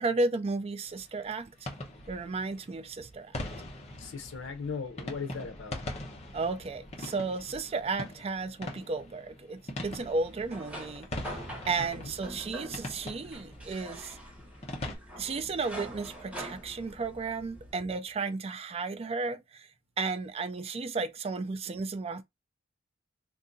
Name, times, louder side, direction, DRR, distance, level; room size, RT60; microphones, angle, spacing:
voice 1, 0.0-1.7 2.1-3.4 6.3-11.4 11.7-14.2 15.2-19.7 20.0-22.2, right 3 dB, 30° right, 0.4 m, -33 dB
sound 1, 0.9-15.0, left 1 dB, 35° left, 0.9 m, -42 dB
voice 2, 4.0-5.8 11.9-12.1, left 5 dB, 75° left, 0.7 m, -38 dB
sound 2, 10.0-17.7, right 1 dB, 5° right, 1.0 m, -45 dB
2.7 x 2.5 x 3.8 m
head